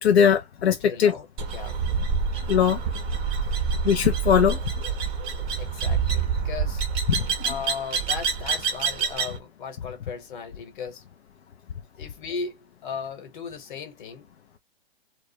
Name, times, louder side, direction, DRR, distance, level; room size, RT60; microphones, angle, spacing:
voice 1, 0.0-1.1 2.5-2.8 3.8-4.6 7.1-7.5, left 8 dB, 90° left, 0.5 m, -20 dB
voice 2, 0.8-1.3 1.5-1.8 3.4-3.6 5.3-6.9 7.4-11.0 12.0-14.3, left 6 dB, 50° left, 1.1 m, -37 dB
sound 1, 1.4-9.4, right 5 dB, 15° right, 0.5 m, -27 dB
2.3 x 2.0 x 2.7 m
hypercardioid pair, 135°, 31 cm